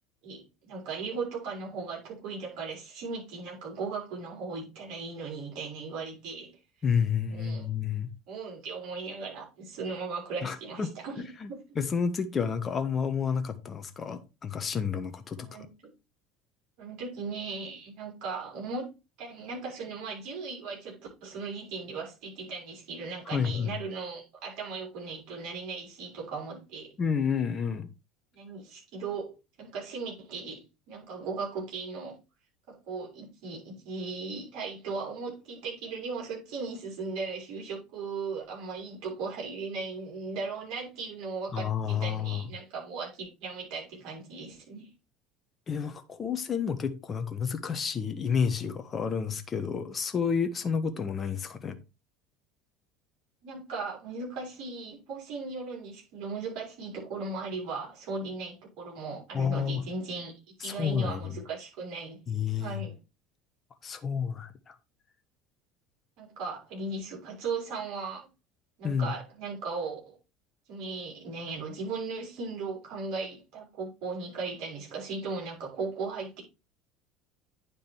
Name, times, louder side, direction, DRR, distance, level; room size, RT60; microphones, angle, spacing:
voice 1, 0.2-6.6 7.3-7.7 8.3-11.6 15.4-15.7 16.8-26.9 28.3-32.2 32.7-44.9 53.4-60.3 60.6-62.2 62.6-63.0 66.2-68.3 68.8-70.2 70.7-76.4, right 4 dB, 55° right, 6.2 m, -37 dB
voice 2, 6.8-8.1 10.4-10.9 11.4-15.5 23.3-23.8 27.0-27.9 41.5-42.5 45.7-51.8 59.3-59.8 60.6-61.4 62.3-62.8 63.8-64.7 68.8-69.1, left 6 dB, 30° left, 1.1 m, -30 dB
9.7 x 5.2 x 4.4 m
figure-of-eight pair, 70°, 0 cm